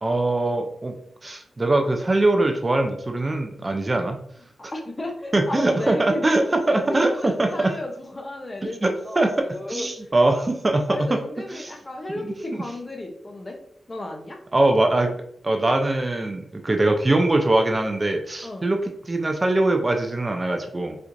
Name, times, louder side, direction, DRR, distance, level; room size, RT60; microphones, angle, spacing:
voice 1, 0.0-1.0 1.2-4.2 5.3-7.7 8.8-9.3 9.7-11.2 11.5-11.7 12.1-12.3 12.5-12.6 14.5-15.1 15.4-18.8 19.0-21.0, right 2 dB, 30° right, 4 dB, 0.4 m, -22 dB
voice 2, 4.6-9.9 10.9-13.6 13.9-14.4 18.4-18.7, left 1 dB, 30° left, 3 dB, 0.6 m, -33 dB
4.3 x 2.4 x 2.5 m, 0.69 s
cardioid pair, 85°, 0 cm